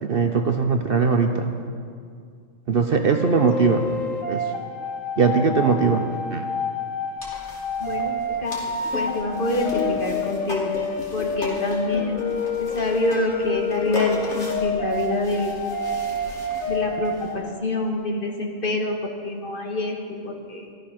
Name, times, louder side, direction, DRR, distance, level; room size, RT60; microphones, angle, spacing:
voice 1, 0.0-1.5 2.7-3.8 4.3-4.4 5.2-6.0 6.3-6.5, right 5 dB, 55° right, 5 dB, 0.9 m, -20 dB
sound 1, 3.1-17.5, left 3 dB, 80° left, 1.4 m, -29 dB
sound 2, 7.2-17.3, left 2 dB, 65° left, 2.9 m, -37 dB
voice 2, 7.8-8.1 8.4-8.6 8.9-10.7 11.1-12.2 12.6-15.5 16.7-19.0 19.2-20.0 20.2-20.6, left 2 dB, 45° left, 1 dB, 1.6 m, -26 dB
14.0 x 13.5 x 5.9 m, 2.2 s
omnidirectional pair, 1.3 m